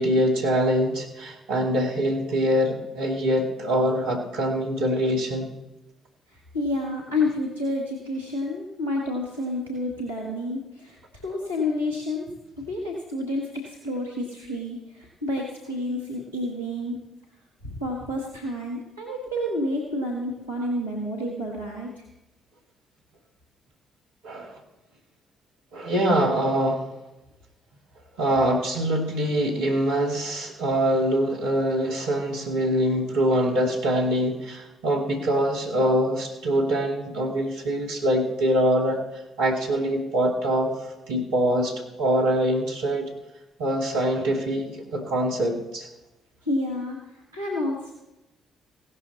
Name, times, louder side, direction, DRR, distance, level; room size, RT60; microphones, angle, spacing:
voice 1, 0.0-5.5 24.2-24.5 25.7-26.8 28.2-39.0 39.4-40.7 41.1-43.1 43.6-45.9, equal, 70° right, -1 dB, 2.1 m, -24 dB
voice 2, 6.3-17.0 17.6-22.0 46.4-47.9, left 1 dB, 85° right, -4 dB, 1.7 m, -29 dB
16.5 x 12.0 x 4.1 m, 0.95 s
figure-of-eight pair, 45°, 0 cm